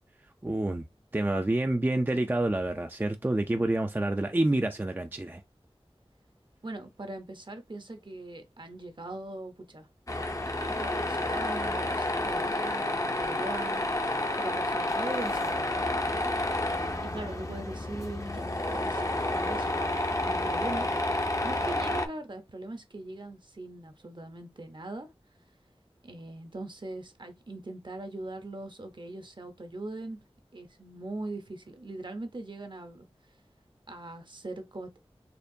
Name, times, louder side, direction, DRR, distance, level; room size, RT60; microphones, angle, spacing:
voice 1, 0.4-0.8 1.1-5.4, right 1 dB, 20° right, 0.4 m, -28 dB
voice 2, 6.6-9.9 10.2-16.1 17.0-19.8 20.2-25.1 26.0-30.2 30.5-33.1 33.9-34.9, right 2 dB, 50° right, 0.8 m, -41 dB
Tools, 10.1-22.1, left 1 dB, 30° left, 0.6 m, -30 dB
4.3 x 2.9 x 2.7 m
wide cardioid pair, 55°, 10 cm